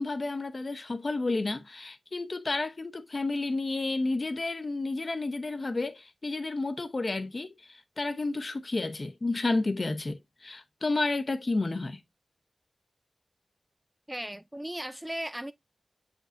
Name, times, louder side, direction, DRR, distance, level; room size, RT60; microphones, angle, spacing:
voice 1, 0.0-12.0, left 2 dB, 45° left, 0.9 m, -31 dB
voice 2, 14.1-15.5, right 1 dB, 10° right, 0.4 m, -36 dB
7.6 x 5.2 x 2.6 m
wide cardioid pair, 95°, 0 cm